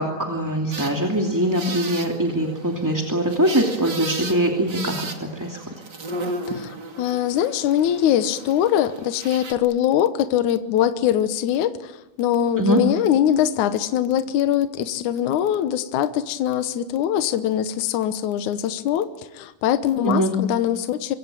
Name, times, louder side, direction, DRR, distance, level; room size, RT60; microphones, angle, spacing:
voice 1, 0.0-5.6 12.6-12.8 20.0-20.3, right 1 dB, 5° right, 1 dB, 2.1 m, -22 dB
sound 1, 0.7-9.5, right 2 dB, 35° right, 2.7 m, -35 dB
voice 2, 6.5-19.1 19.3-21.2, left 10 dB, 70° left, 10 dB, 2.4 m, -22 dB
25.0 x 24.5 x 9.2 m, 0.99 s
omnidirectional pair, 3.7 m